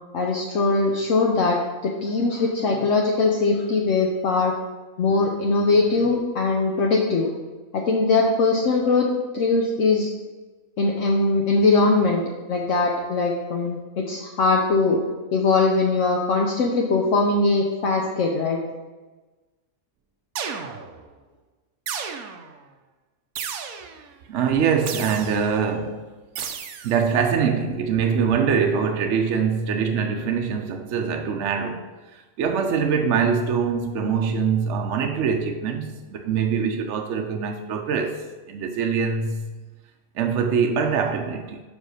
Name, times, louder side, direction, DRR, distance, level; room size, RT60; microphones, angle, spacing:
voice 1, 0.1-4.5 5.0-7.3 7.7-9.1 9.3-10.1 10.8-12.2 12.5-15.0 15.3-18.6, left 3 dB, 65° left, 1.1 m, -21 dB
sound 1, 20.4-21.1 21.9-22.6 23.4-24.1 24.9-25.6 26.4-27.1, right 7 dB, 90° right, 1.1 m, -33 dB
voice 2, 24.3-26.0 26.8-39.6 40.2-41.6, right 6 dB, 65° right, 0.9 m, -23 dB
5.6 x 5.1 x 6.3 m
omnidirectional pair, 1.4 m